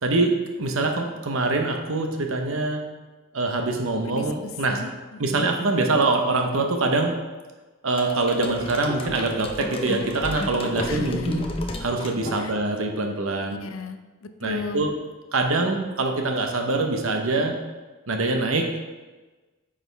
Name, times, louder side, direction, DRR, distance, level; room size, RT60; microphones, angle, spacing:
voice 1, 0.0-2.8 3.3-4.8 5.2-7.2 7.8-11.5 11.8-13.6 14.4-14.9 15.3-17.6 18.1-18.8, right 2 dB, 80° right, 3 dB, 1.0 m, -24 dB
voice 2, 4.0-5.5 10.9-11.4 12.4-12.5 13.5-14.9, left 3 dB, 80° left, 8 dB, 0.5 m, -36 dB
sound 1, 8.0-12.8, left 1 dB, 25° left, 0.6 m, -32 dB
8.5 x 5.0 x 3.4 m, 1.2 s
head